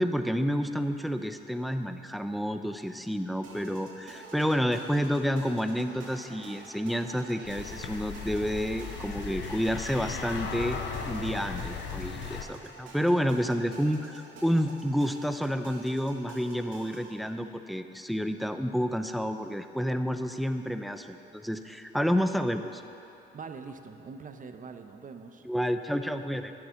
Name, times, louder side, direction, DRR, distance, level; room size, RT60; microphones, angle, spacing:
voice 1, 0.0-22.8 25.4-26.5, equal, ahead, 8 dB, 0.6 m, -29 dB
sound 1, 3.4-17.2, right 3 dB, 75° right, 2.3 m, -49 dB
sound 2, 4.2-10.5, right 3 dB, 60° right, 1.7 m, -54 dB
sound 3, 7.4-12.4, left 6 dB, 65° left, 1.1 m, -37 dB
voice 2, 23.3-25.5 26.3-26.4, right 5 dB, 40° right, 7 dB, 0.9 m, -43 dB
12.5 x 9.5 x 5.9 m, 2.9 s
cardioid pair, 90°, 20 cm